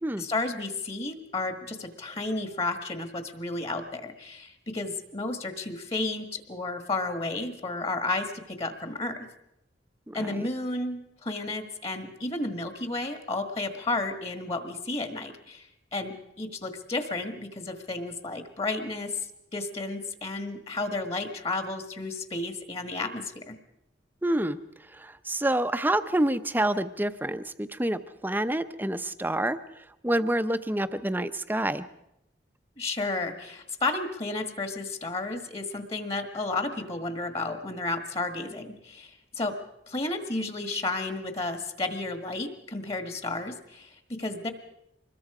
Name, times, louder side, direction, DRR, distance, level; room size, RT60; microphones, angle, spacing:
voice 1, 0.2-9.3 10.1-23.5 32.8-39.6 39.9-44.5, left 2 dB, 30° left, 8 dB, 1.6 m, -32 dB
voice 2, 10.1-10.5 24.2-24.6 25.0-29.6 30.0-31.9, right 1 dB, 10° right, 11 dB, 0.7 m, -27 dB
25.0 x 21.0 x 4.9 m, 0.85 s
head